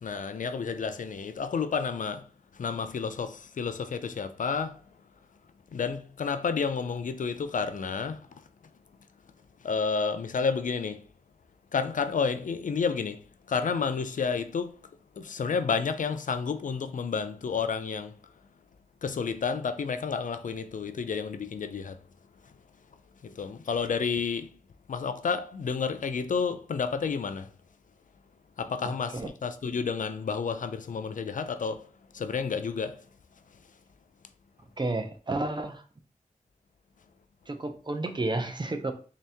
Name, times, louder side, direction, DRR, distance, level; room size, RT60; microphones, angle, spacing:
voice 1, 0.0-2.3 2.5-4.8 5.7-8.3 9.6-11.0 11.7-13.2 13.5-14.7 15.2-18.1 19.0-22.0 23.2-24.5 24.9-27.5 28.6-31.9 32.1-33.0, left 5 dB, 70° left, 0.4 m, -30 dB
voice 2, 28.8-29.3 34.8-35.8 37.5-38.9, right 2 dB, 35° right, 0.6 m, -31 dB
3.5 x 2.8 x 3.4 m
wide cardioid pair, 65°, 14 cm